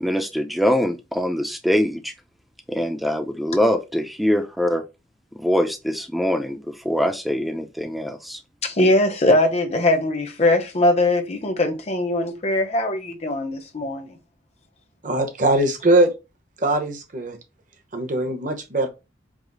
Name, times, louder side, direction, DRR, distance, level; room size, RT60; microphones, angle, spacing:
voice 1, 0.0-2.1 2.7-4.8 5.4-8.4, equal, ahead, 0.4 m, -23 dB
voice 2, 8.6-14.2, left 1 dB, 35° left, 0.7 m, -21 dB
voice 3, 15.0-16.1 16.6-17.4 17.9-18.9, right 2 dB, 45° right, 0.8 m, -21 dB
4.8 x 2.0 x 3.9 m
head